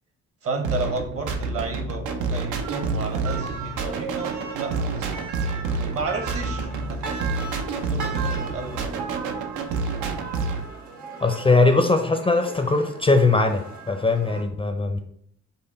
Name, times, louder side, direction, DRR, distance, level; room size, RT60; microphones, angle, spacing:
voice 1, 0.4-5.1 5.9-7.2 7.7-8.9, right 3 dB, 50° right, 5 dB, 1.0 m, -32 dB
sound 1, 0.6-10.7, right 4 dB, 85° right, 0.6 m, -28 dB
sound 2, 2.6-14.4, right 4 dB, 70° right, 1.4 m, -38 dB
voice 2, 11.2-15.0, left 3 dB, 20° left, 6 dB, 0.5 m, -20 dB
5.5 x 2.1 x 4.1 m, 0.67 s
cardioid pair, 90°, 30 cm